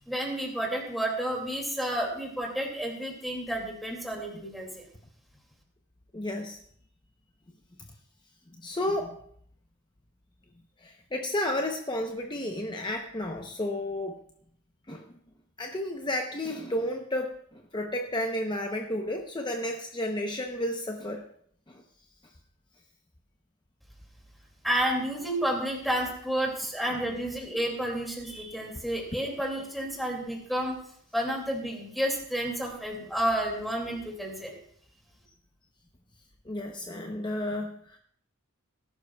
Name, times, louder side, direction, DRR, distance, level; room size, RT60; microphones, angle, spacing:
voice 1, 0.1-4.9 24.6-30.8 31.1-34.5, right 1 dB, ahead, 0 dB, 2.4 m, -30 dB
voice 2, 6.1-6.6 8.6-9.2 10.8-14.2 14.9-15.0 15.6-21.2 21.7-21.8 26.9-27.0 36.5-38.0, left 1 dB, 20° left, 2 dB, 0.8 m, -32 dB
19.5 x 11.5 x 2.3 m, 0.63 s
head